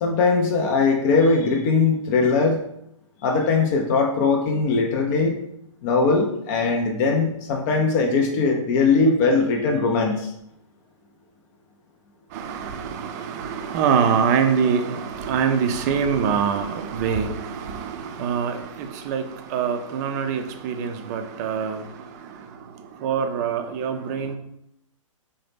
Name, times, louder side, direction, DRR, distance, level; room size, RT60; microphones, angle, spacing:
voice 1, 0.0-2.6 3.2-5.3 5.8-10.3, left 4 dB, 35° left, 2 dB, 0.4 m, -20 dB
voice 2, 12.3-19.2 19.5-21.8 23.0-24.4, right 7 dB, 30° right, 6 dB, 0.4 m, -24 dB
3.8 x 2.1 x 3.3 m, 0.77 s
hypercardioid pair, 125°, 17 cm